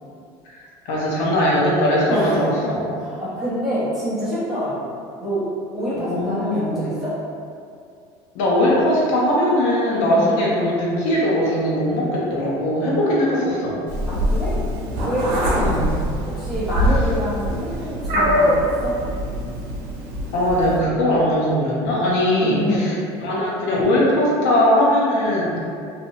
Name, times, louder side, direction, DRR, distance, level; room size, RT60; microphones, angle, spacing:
voice 1, 0.5-2.9 6.0-6.8 8.3-13.8 15.6-15.9 20.3-22.9 23.2-25.6, left 1 dB, 60° left, -5 dB, 0.6 m, -20 dB
voice 2, 3.0-4.9 5.2-7.2 10.1-10.4 14.1-14.6 15.0-15.9 16.2-18.9 22.4-23.0, equal, 5° right, -13 dB, 0.7 m, -27 dB
Meow, 13.9-20.8, equal, 90° right, 0.7 m, -23 dB
2.7 x 2.1 x 2.7 m, 2.4 s
cardioid pair, 180°, 12 cm